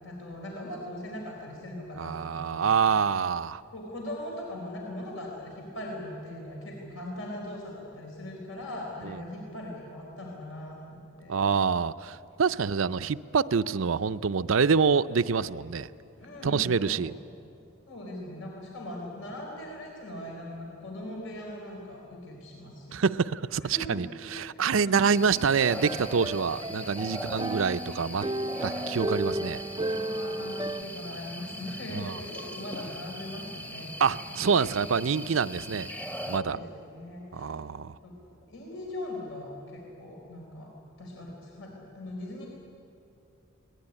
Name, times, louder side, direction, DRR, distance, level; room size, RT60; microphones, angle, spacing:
voice 1, 0.0-2.7 3.1-3.2 3.7-11.3 16.2-17.0 17.9-23.1 23.7-24.0 24.8-24.9 29.9-34.1 36.4-37.5 38.0-38.1 38.5-40.7 41.0-42.5, left 1 dB, 80° left, 4.5 m, -40 dB
voice 2, 2.0-3.6 11.3-15.9 16.4-17.1 22.9-28.3 28.6-29.6 31.9-32.1 34.0-35.9 36.3-36.6 37.3-37.9, right 5 dB, 70° right, 0.5 m, -26 dB
sound 1, 25.1-36.4, equal, 10° left, 0.9 m, -40 dB
sound 2, 25.3-30.8, right 1 dB, 20° right, 0.5 m, -34 dB
22.5 x 19.0 x 10.0 m
head